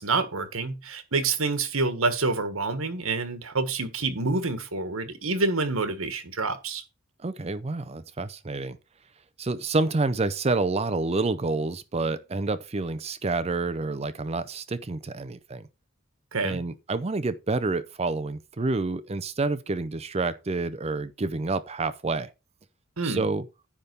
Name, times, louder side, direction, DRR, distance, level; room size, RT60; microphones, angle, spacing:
voice 1, 0.0-6.8 16.3-16.6 23.0-23.3, right 3 dB, 80° right, 1.5 m, -27 dB
voice 2, 7.2-8.8 9.4-15.6 16.4-22.3 23.0-23.4, right 3 dB, 30° right, 0.5 m, -28 dB
10.0 x 3.5 x 6.8 m
head